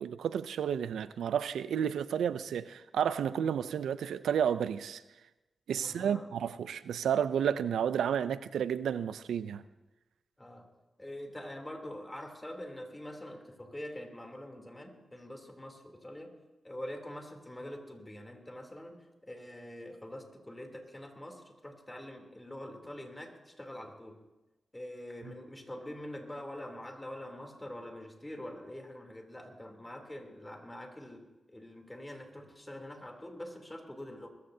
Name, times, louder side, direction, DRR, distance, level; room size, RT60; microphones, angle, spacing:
voice 1, 0.0-5.0 5.7-9.6, right 8 dB, 90° right, 0.5 m, -31 dB
voice 2, 5.8-6.3 10.4-10.7 11.0-16.3 16.6-24.2 24.7-34.3, left 1 dB, 20° left, 3.2 m, -45 dB
21.0 x 14.5 x 2.8 m
supercardioid pair, 40°, 0 cm